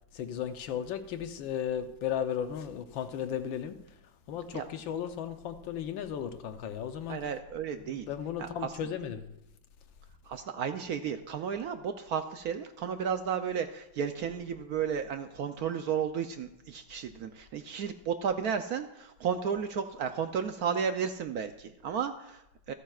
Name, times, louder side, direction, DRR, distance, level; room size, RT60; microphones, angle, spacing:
voice 1, 0.1-4.0 4.3-7.2 7.8-9.3, left 9 dB, 85° left, 1.6 m, -35 dB
voice 2, 7.1-8.1 8.4-8.7 10.3-22.7, right 7 dB, 70° right, 0.9 m, -33 dB
26.0 x 8.9 x 2.4 m
omnidirectional pair, 2.0 m